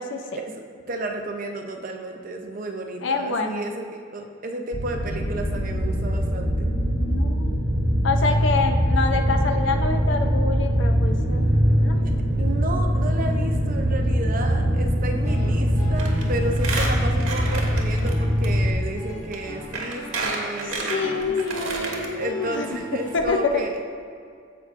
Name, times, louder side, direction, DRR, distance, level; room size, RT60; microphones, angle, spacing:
voice 1, 0.3-6.7 12.0-12.1 12.4-21.4 21.9-23.8, right 2 dB, 40° right, 3 dB, 0.6 m, -32 dB
voice 2, 3.0-3.7 7.0-7.7 8.0-11.5 11.8-12.0 20.9-22.8 23.1-23.7, left 4 dB, 60° left, 5 dB, 0.6 m, -26 dB
sound 1, 4.7-18.7, equal, 70° right, 1.9 m, -22 dB
Guitar, 15.0-23.3, equal, 15° left, 1.6 m, -41 dB
Squeak, 16.0-16.2 16.5-18.1 18.4-18.5 19.3-19.4 19.7-22.1 22.5-22.6 22.8-22.9, right 3 dB, 90° right, 1.3 m, -30 dB
14.5 x 4.9 x 2.5 m, 2.2 s
head